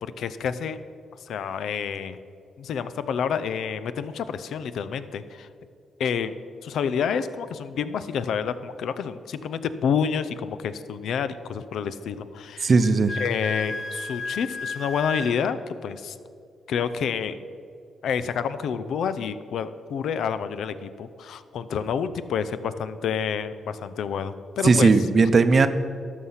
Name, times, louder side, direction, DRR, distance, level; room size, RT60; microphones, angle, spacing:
voice 1, 0.0-0.8 1.3-2.2 2.6-5.5 6.0-6.3 6.6-12.7 13.2-16.2 16.7-17.4 18.0-24.9, left 7 dB, 75° left, 13 dB, 0.5 m, -28 dB
voice 2, 12.6-13.2 24.6-25.7, right 4 dB, 45° right, 11 dB, 0.7 m, -17 dB
Wind instrument woodwind instrument, 12.8-15.4, left 3 dB, 55° left, 1.5 m, -32 dB
12.5 x 6.6 x 5.7 m, 2.4 s
cardioid pair, 75°, 0 cm